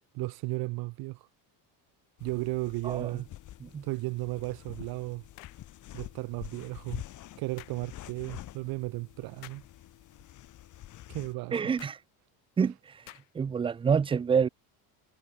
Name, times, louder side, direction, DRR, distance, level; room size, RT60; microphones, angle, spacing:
voice 1, 0.1-1.2 2.2-3.3 3.8-5.2 5.9-7.0 7.4-9.6 11.1-11.6, right 22 dB, 55° right, 1.1 m, -34 dB
sound 1, 2.2-11.3, left 13 dB, 40° left, 8.0 m, -47 dB
voice 2, 2.8-3.2 3.6-3.8 11.5-12.0 12.6-12.7 13.3-14.5, right 6 dB, 10° right, 0.5 m, -27 dB
sound 2, 5.3-5.7 7.6-7.8 9.4-9.7 11.8-12.0 13.1-13.5, left 34 dB, 80° left, 2.8 m, -50 dB
cardioid pair, 170°, 44 cm